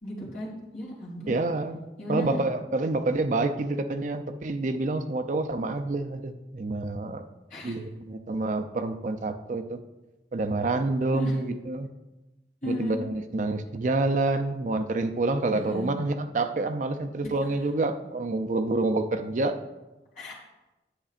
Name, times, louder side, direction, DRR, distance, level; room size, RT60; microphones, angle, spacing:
voice 1, 0.0-1.3 2.0-2.4 7.5-7.7 11.1-11.3 12.6-13.0 15.5-15.9 20.1-20.3, left 1 dB, 45° left, -5 dB, 2.9 m, -34 dB
voice 2, 1.2-7.2 7.6-9.8 10.3-11.9 12.6-19.5, right 2 dB, 45° right, 8 dB, 0.4 m, -28 dB
10.0 x 8.1 x 2.5 m, 1.0 s
head